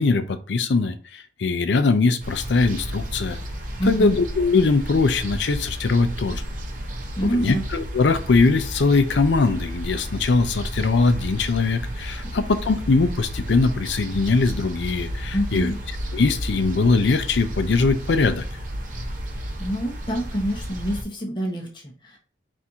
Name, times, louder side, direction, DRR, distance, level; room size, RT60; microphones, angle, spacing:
voice 1, 0.0-3.4 3.9-6.5 7.2-15.7 16.1-18.4, left 3 dB, 70° left, 0.5 m, -21 dB
sound 1, 2.2-21.0, equal, 45° right, 0.8 m, -32 dB
voice 2, 3.8-4.1 7.2-7.6 15.3-15.8 19.6-22.2, equal, 25° left, 0.8 m, -26 dB
4.4 x 2.6 x 3.5 m
head